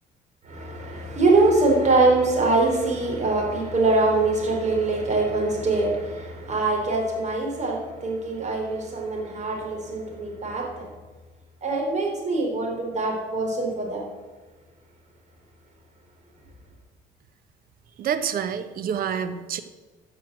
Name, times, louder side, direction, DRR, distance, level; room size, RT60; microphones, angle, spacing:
voice 1, 0.5-10.9 11.6-14.0, right 2 dB, 45° right, 0 dB, 4.3 m, -23 dB
voice 2, 18.0-19.6, right 8 dB, 60° right, 11 dB, 1.1 m, -27 dB
14.0 x 6.8 x 7.7 m, 1.3 s
cardioid pair, 110°, 17 cm